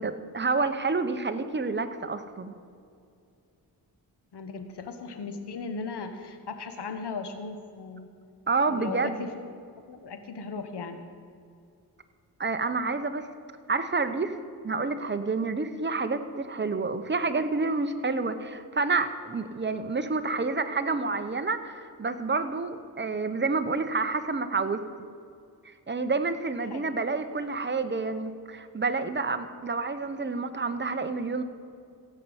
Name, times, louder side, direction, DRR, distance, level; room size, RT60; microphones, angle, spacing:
voice 1, 0.0-2.5 8.5-9.2 12.4-13.3 13.7-14.4 14.6-24.8 25.9-31.4, right 3 dB, 25° right, 9 dB, 0.9 m, -29 dB
voice 2, 4.3-8.1 8.7-9.3 9.9-11.0 26.7-26.9, left 4 dB, 75° left, 7 dB, 1.3 m, -37 dB
16.0 x 5.6 x 8.0 m, 2.4 s
cardioid pair, 60°, 41 cm